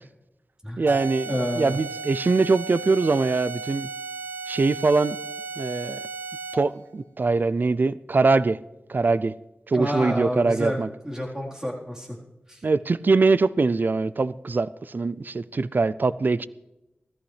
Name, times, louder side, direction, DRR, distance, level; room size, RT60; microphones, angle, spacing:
voice 1, 0.8-1.3 1.6-3.9 4.5-5.2 5.6-6.0 6.5-8.6 8.9-9.3 9.7-10.9 12.6-16.5, right 3 dB, 55° right, 0.4 m, -22 dB
sound 1, 0.9-6.8, right 4 dB, 75° right, 1.0 m, -35 dB
voice 2, 1.3-1.8 9.7-12.2 12.5-12.6, equal, 15° right, 4.0 m, -29 dB
17.0 x 14.0 x 3.3 m
cardioid pair, 45°, 4 cm